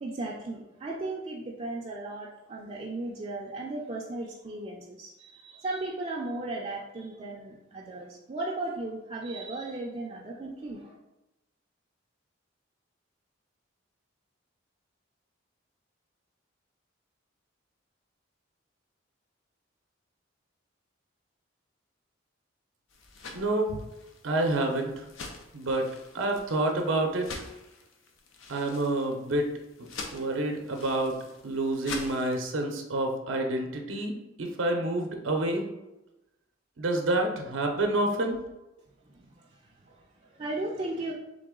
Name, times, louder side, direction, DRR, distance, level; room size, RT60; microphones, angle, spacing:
voice 1, 0.0-10.9 39.1-39.5 39.8-41.1, right 2 dB, 30° right, -2 dB, 0.4 m, -36 dB
sound 1, 22.9-32.4, left 3 dB, 85° left, 0.6 m, -45 dB
voice 2, 23.3-23.8 24.2-24.9 25.5-25.9 26.1-27.4 28.5-29.5 30.1-31.2 31.4-34.1 34.4-35.6 36.8-38.4, right 2 dB, 80° right, 3 dB, 0.6 m, -28 dB
3.8 x 3.3 x 3.7 m, 0.97 s
head